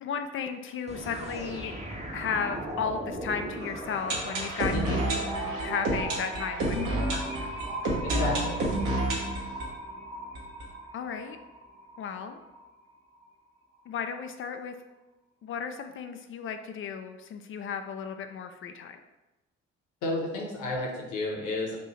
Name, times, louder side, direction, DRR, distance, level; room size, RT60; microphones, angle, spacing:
voice 1, 0.0-1.8 2.1-5.0 5.4-7.5 10.9-11.4 12.0-12.4 13.9-14.7 15.4-19.0, left 6 dB, 35° left, 7 dB, 0.4 m, -34 dB
sound 1, 0.9-4.8, right 1 dB, 20° right, 0.8 m, -38 dB
sound 2, 3.6-11.4 11.6-11.7 11.9-12.0 12.6-12.7, right 1 dB, 60° right, 1.2 m, -30 dB
voice 2, 8.0-8.7 20.0-21.8, left 2 dB, 55° left, -1 dB, 1.1 m, -32 dB
4.2 x 2.6 x 4.4 m, 1.1 s
figure-of-eight pair, 40°, 36 cm